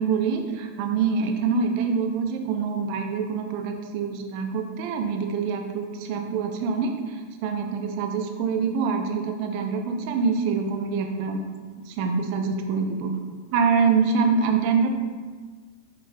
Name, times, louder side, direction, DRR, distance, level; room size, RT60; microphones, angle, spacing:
voice 1, 0.0-11.4 11.9-13.2 13.5-15.0, right 5 dB, 45° right, 4 dB, 0.5 m, -25 dB
5.3 x 3.1 x 2.6 m, 1.5 s
figure-of-eight pair, 90°, 0 cm